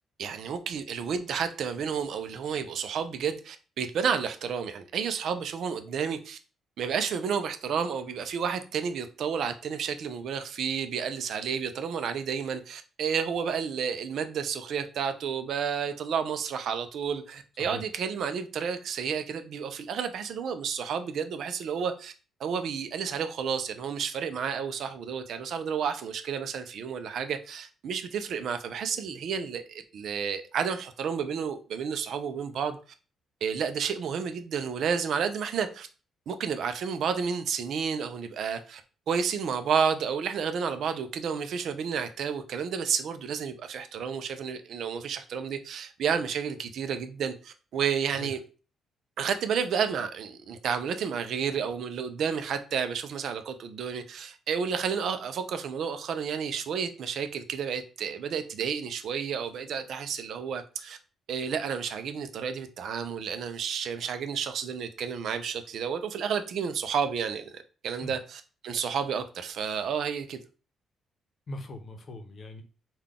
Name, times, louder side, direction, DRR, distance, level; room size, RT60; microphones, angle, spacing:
voice 1, 0.2-6.4 6.8-22.1 22.4-32.8 33.4-35.9 36.3-38.8 39.1-48.4 49.2-61.0 61.3-70.4, right 7 dB, 70° right, 0.4 m, -31 dB
voice 2, 71.5-72.6, left 1 dB, 45° left, 0.7 m, -40 dB
3.7 x 2.3 x 3.5 m
cardioid pair, 90°, 0 cm